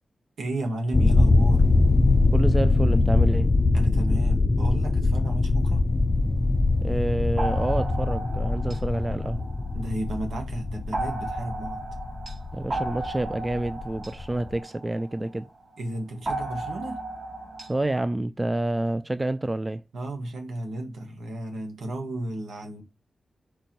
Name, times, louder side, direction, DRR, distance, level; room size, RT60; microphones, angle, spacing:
voice 1, 0.4-1.7 3.7-5.9 9.7-11.9 15.8-17.1 19.9-22.8, right 1 dB, 85° right, 1.3 m, -33 dB
sound 1, 0.9-14.6, left 3 dB, 45° left, 0.5 m, -22 dB
voice 2, 2.3-3.5 6.8-9.4 12.5-15.5 17.7-19.8, right 1 dB, 25° right, 0.3 m, -28 dB
sound 2, 7.4-10.1 10.9-15.5 16.3-18.0, right 2 dB, 60° right, 2.2 m, -35 dB
4.4 x 2.6 x 4.5 m
cardioid pair, 45°, 0 cm